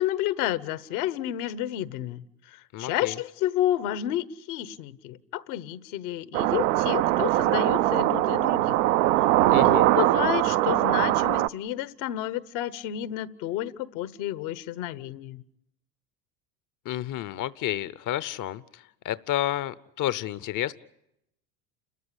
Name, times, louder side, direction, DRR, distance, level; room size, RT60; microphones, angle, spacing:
voice 1, 0.0-2.2 2.5-8.8 9.5-15.4, left 13 dB, 65° left, 1.3 m, -30 dB
voice 2, 2.7-3.1 9.5-9.9 16.9-18.6 19.0-20.7, left 13 dB, 40° left, 0.8 m, -30 dB
sound 1, 6.3-11.5, right 16 dB, 70° right, 0.8 m, -22 dB
29.5 x 14.0 x 9.9 m
hypercardioid pair, 80°, 48 cm